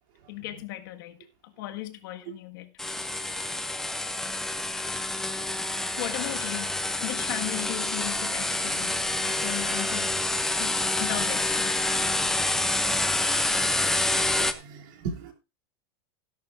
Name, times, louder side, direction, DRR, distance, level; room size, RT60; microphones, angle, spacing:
voice 1, 0.3-2.7 6.0-10.3 10.6-11.7, left 16 dB, 55° left, 1.7 m, -37 dB
sound 1, 2.8-14.5, left 2 dB, 5° left, 0.6 m, -27 dB
voice 2, 14.4-15.3, right 5 dB, 50° right, 2.9 m, -36 dB
16.0 x 11.5 x 2.6 m
supercardioid pair, 180°, 13 cm